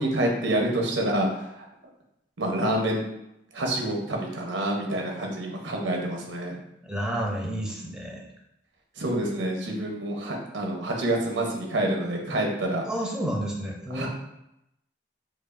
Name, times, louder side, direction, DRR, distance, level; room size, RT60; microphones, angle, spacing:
voice 1, 0.0-1.7 2.4-3.0 3.5-6.6 9.0-12.8 13.9-14.1, right 1 dB, 90° right, 0 dB, 0.8 m, -27 dB
voice 2, 6.8-8.2 12.8-14.1, equal, 5° right, -2 dB, 0.5 m, -30 dB
4.9 x 2.4 x 2.5 m, 0.83 s
head